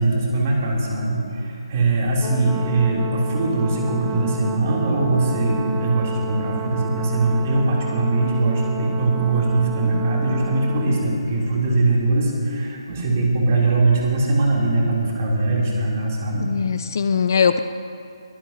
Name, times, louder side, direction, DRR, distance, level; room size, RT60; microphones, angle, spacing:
voice 1, 0.0-16.5, right 2 dB, 30° right, -4 dB, 3.6 m, -21 dB
Brass instrument, 2.2-11.1, right 8 dB, 5° right, 0.7 m, -32 dB
voice 2, 16.4-17.6, left 6 dB, 40° left, 11 dB, 0.5 m, -20 dB
23.0 x 18.0 x 3.0 m, 2.5 s
figure-of-eight pair, 145°, 3 cm